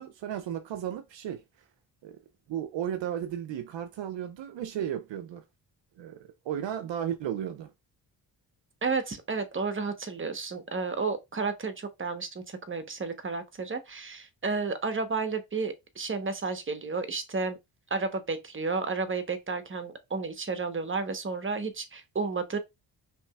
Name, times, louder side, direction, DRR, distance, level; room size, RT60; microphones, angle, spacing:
voice 1, 0.0-1.4 2.0-2.2 2.5-5.4 6.0-7.7, right 10 dB, 65° right, 0.7 m, -34 dB
voice 2, 8.8-17.6 17.9-22.6, right 4 dB, 25° right, 1.1 m, -32 dB
5.1 x 3.0 x 2.4 m
supercardioid pair, 45°, 48 cm